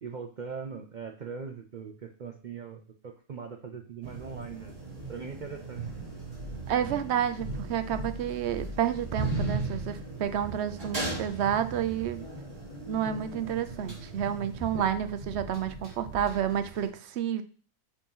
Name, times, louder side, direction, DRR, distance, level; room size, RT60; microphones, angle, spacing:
voice 1, 0.0-4.7 5.1-5.8 14.7-14.9, right 6 dB, 85° right, 4 dB, 0.4 m, -40 dB
sound 1, 4.0-16.9, right 3 dB, 40° right, 3.0 m, -37 dB
voice 2, 6.7-12.3 12.9-17.4, right 9 dB, 60° right, 10 dB, 0.7 m, -30 dB
7.1 x 2.9 x 5.4 m, 0.40 s
omnidirectional pair, 1.6 m